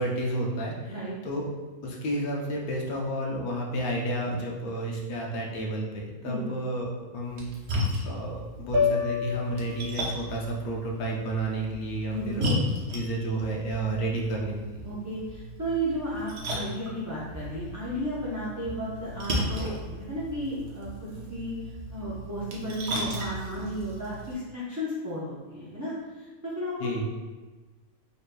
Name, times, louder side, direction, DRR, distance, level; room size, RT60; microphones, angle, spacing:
voice 1, 0.0-0.9 1.2-1.5 1.8-7.5 7.7-12.6 12.9-14.8 26.8-27.1, right 1 dB, 80° left, -1 dB, 1.2 m, -31 dB
Splash splatter, 7.2-24.3, equal, 55° right, 0.9 m, -35 dB
sound 1, 8.7-13.0, left 5 dB, 80° right, 1.1 m, -32 dB
voice 2, 12.1-12.5 14.8-19.7 20.1-21.6 21.9-26.9, right 1 dB, 20° right, -9 dB, 0.5 m, -33 dB
5.4 x 3.0 x 2.2 m, 1.3 s
omnidirectional pair, 1.5 m